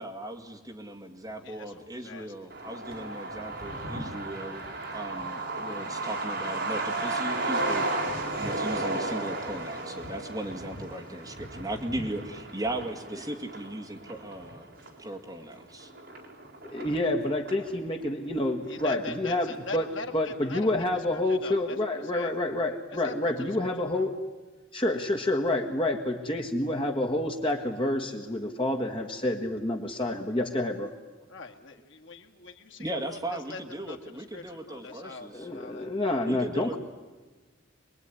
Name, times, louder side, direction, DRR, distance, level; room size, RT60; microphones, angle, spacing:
voice 1, 0.0-4.6 4.9-14.7 15.0-15.9 32.8-35.5 36.2-36.8, right 1 dB, 20° right, 1 dB, 2.3 m, -37 dB
voice 2, 1.4-2.3 12.0-12.1 18.7-22.4 22.9-24.0 31.3-33.6 33.9-36.3, left 4 dB, 65° left, 3 dB, 1.9 m, -42 dB
Truck, 2.5-17.7 18.0-18.1 18.4-19.2 19.5-19.6 20.0-20.3, right 2 dB, 55° right, 4.4 m, -34 dB
voice 3, 16.7-19.5 19.7-19.8 20.1-24.1 24.7-30.9 35.3-36.8, left 1 dB, 25° left, 2 dB, 1.6 m, -28 dB
25.5 x 21.0 x 9.8 m, 1.3 s
head